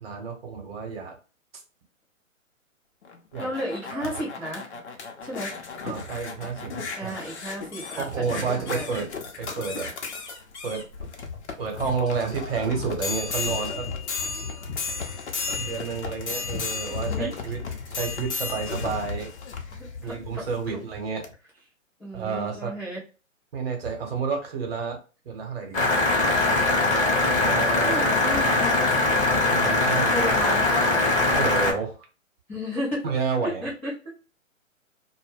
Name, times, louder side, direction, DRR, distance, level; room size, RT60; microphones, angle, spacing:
voice 1, 0.0-1.1 3.3-3.5 3.9-4.1 5.8-7.1 8.0-9.1 9.4-9.9 10.6-10.8 11.6-13.9 15.5-17.6 17.9-19.3 20.0-21.3 22.1-22.7 23.5-25.0 25.2-25.8 27.2-28.1 29.5-30.1 31.3-31.9 33.0-33.6, right 5 dB, 45° right, 3 dB, 1.0 m, -30 dB
sound 1, 3.0-20.7 21.2-21.3, left 5 dB, 55° left, 0.7 m, -34 dB
voice 2, 3.4-4.7 5.2-5.5 7.0-8.9 16.9-17.3 19.8-20.8 22.0-23.0 27.8-29.5 30.1-31.1 32.5-33.0 33.4-34.1, equal, 5° left, -13 dB, 0.4 m, -33 dB
sound 2, 25.7-31.7, left 2 dB, 25° left, 0.8 m, -21 dB
2.2 x 2.2 x 3.2 m, 0.34 s
figure-of-eight pair, 130°, 40 cm